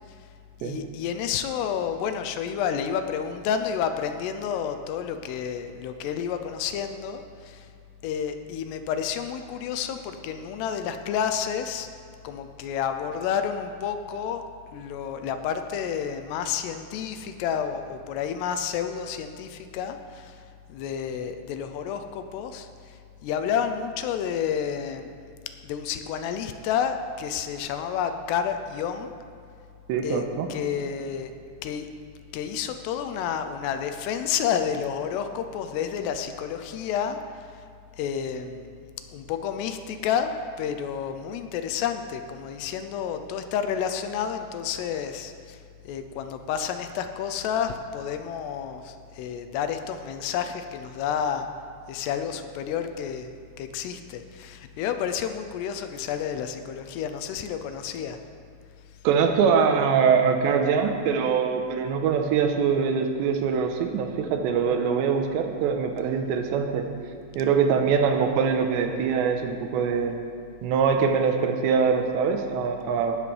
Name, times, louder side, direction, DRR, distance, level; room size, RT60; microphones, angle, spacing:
voice 1, 0.6-7.7 8.0-11.9 12.2-14.4 14.7-20.4 20.7-23.0 23.2-25.1 25.6-29.1 30.0-31.3 31.6-31.9 32.3-37.2 38.0-38.7 39.1-40.3 40.6-45.6 45.8-51.5 51.9-58.2, left 8 dB, 80° left, 8 dB, 2.6 m, -30 dB
voice 2, 29.9-30.5 59.0-66.9 67.4-70.2 70.6-73.2, right 6 dB, 90° right, 5 dB, 3.2 m, -23 dB
18.0 x 12.0 x 3.3 m, 2.3 s
omnidirectional pair, 5.0 m